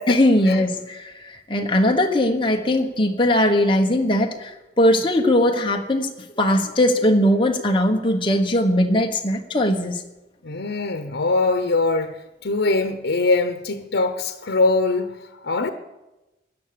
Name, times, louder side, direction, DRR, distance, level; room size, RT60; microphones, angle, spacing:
voice 1, 0.1-6.1 6.4-10.0, left 1 dB, 25° left, 1.3 m, -20 dB
voice 2, 10.4-15.7, left 3 dB, 90° left, 0.9 m, -22 dB
17.0 x 11.0 x 6.9 m
head